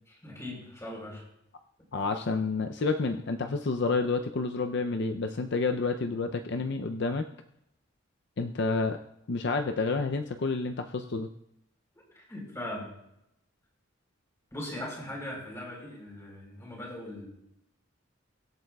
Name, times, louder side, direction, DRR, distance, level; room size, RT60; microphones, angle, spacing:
voice 1, 0.2-1.2 12.1-12.9 14.5-17.3, left 1 dB, 15° left, -2 dB, 3.9 m, -39 dB
voice 2, 1.9-7.3 8.4-9.0 9.3-11.3, left 3 dB, 55° left, 6 dB, 0.5 m, -29 dB
23.5 x 8.6 x 2.3 m, 0.82 s
head